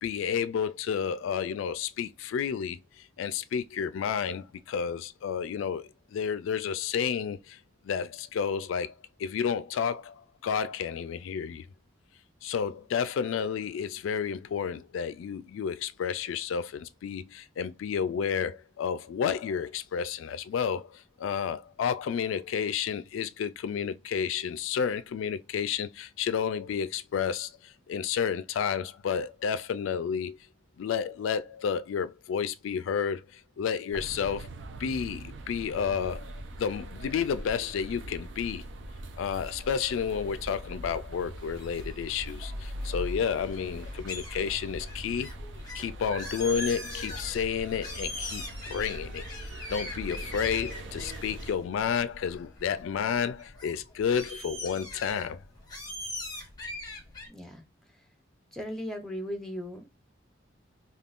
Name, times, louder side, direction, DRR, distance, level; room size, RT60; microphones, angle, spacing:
voice 1, 0.0-7.6 7.8-8.9 9.2-11.7 12.4-30.4 30.8-34.5 34.8-38.6 39.2-45.3 45.7-49.2 49.7-55.4, left 7 dB, 90° left, 0.3 m, -31 dB
sound 1, 33.9-51.5, right 1 dB, 70° right, 0.5 m, -41 dB
sound 2, 41.4-57.3, left 1 dB, 20° left, 0.9 m, -43 dB
voice 2, 57.3-57.6 58.5-59.9, equal, 5° left, 0.6 m, -37 dB
3.5 x 2.3 x 2.4 m
head